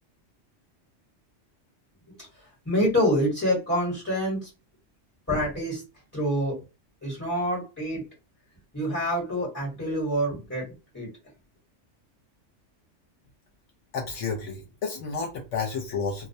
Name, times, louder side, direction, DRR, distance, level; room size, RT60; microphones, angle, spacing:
voice 1, 2.6-4.5 5.3-5.8 6.1-6.6 7.0-8.0 8.7-10.7 10.9-11.1, equal, 15° left, 0.9 m, -26 dB
voice 2, 13.9-16.3, left 5 dB, 75° left, 0.9 m, -31 dB
2.3 x 2.0 x 2.6 m
omnidirectional pair, 1.3 m